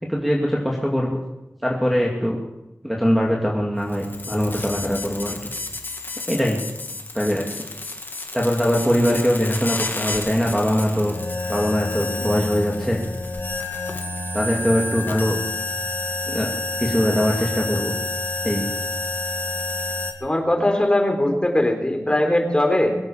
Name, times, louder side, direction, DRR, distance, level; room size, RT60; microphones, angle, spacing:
voice 1, 0.0-1.2 1.6-2.4 2.8-5.5 6.3-6.6 7.1-7.5 8.3-11.1 11.5-13.0 14.3-15.4 16.3-16.5 16.8-17.9 18.4-18.7, equal, ahead, -2 dB, 2.4 m, -22 dB
sound 1, 3.8-20.1, left 2 dB, 45° left, 1.9 m, -29 dB
voice 2, 20.2-23.0, left 1 dB, 20° left, 3 dB, 3.8 m, -20 dB
22.0 x 8.8 x 7.1 m, 0.96 s
wide cardioid pair, 75°, 5 cm